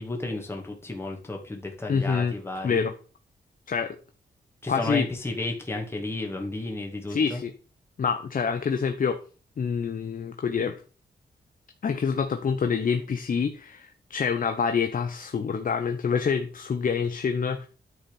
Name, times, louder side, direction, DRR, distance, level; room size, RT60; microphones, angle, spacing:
voice 1, 0.0-2.9 4.6-7.4, left 2 dB, 15° left, 1 dB, 2.0 m, -33 dB
voice 2, 1.9-2.3 2.6-2.9 3.7-4.0 4.7-5.1 7.1-7.5 8.0-9.2 9.6-10.8 11.8-17.7, left 6 dB, 55° left, 7 dB, 0.9 m, -26 dB
9.7 x 4.3 x 6.9 m, 0.37 s
cardioid pair, 90°, 17 cm